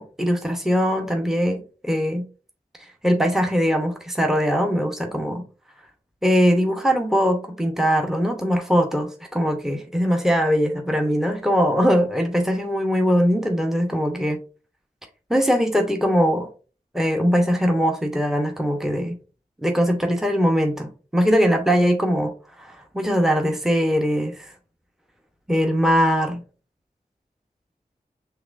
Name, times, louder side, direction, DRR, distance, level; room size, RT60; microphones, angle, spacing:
voice 1, 0.0-2.2 3.0-5.4 6.2-14.4 15.3-16.5 16.9-19.2 19.6-22.3 22.6-24.5 25.5-26.4, equal, 5° right, 3 dB, 0.9 m, -21 dB
5.8 x 3.2 x 2.6 m, 0.36 s
cardioid pair, 45°, 16 cm